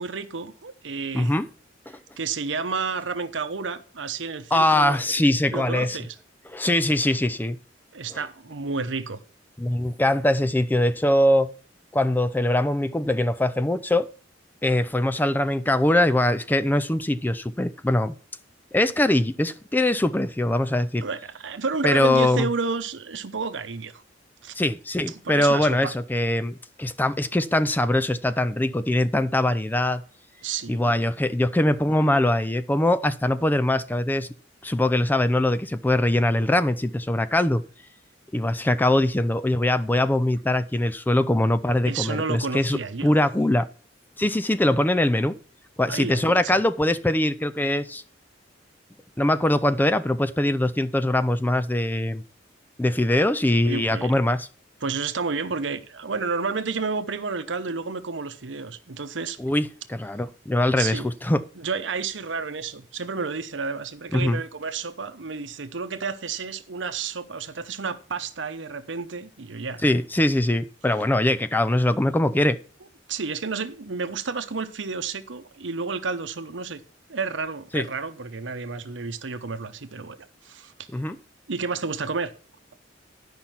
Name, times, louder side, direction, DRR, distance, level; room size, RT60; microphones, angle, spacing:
voice 1, 0.0-1.3 2.2-5.0 5.5-6.2 7.9-9.2 21.0-24.0 24.4-24.6 25.1-25.9 30.4-31.0 41.8-43.2 45.9-46.6 53.6-54.1 54.8-59.4 60.8-61.1 61.5-69.8 73.1-76.8 77.1-80.2 80.4-80.7 81.5-82.3, right 4 dB, 75° right, 0.9 m, -31 dB
voice 2, 1.1-1.5 4.5-6.0 6.5-7.6 8.1-8.2 9.6-11.5 11.9-14.1 14.6-18.1 18.7-21.0 21.8-22.5 24.6-30.0 30.7-34.3 34.6-37.6 38.3-43.7 44.2-45.4 45.8-48.0 49.2-52.2 52.8-54.5 59.4-61.4 64.1-64.4 69.8-72.6 77.7-77.8 80.9-81.2, left 1 dB, 10° left, 0.4 m, -22 dB
11.0 x 5.7 x 5.7 m
head